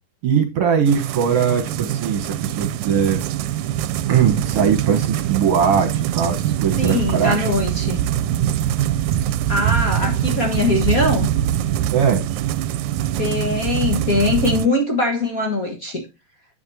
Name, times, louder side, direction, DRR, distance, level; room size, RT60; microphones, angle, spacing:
voice 1, 0.2-3.2 4.1-7.5 11.9-12.2, right 7 dB, 60° right, 1.9 m, -20 dB
sound 1, 0.9-14.7, right 11 dB, 85° right, 2.0 m, -23 dB
voice 2, 6.8-8.0 9.5-11.3 13.2-16.0, left 2 dB, 40° left, 1.4 m, -21 dB
10.5 x 8.0 x 2.7 m
omnidirectional pair, 3.3 m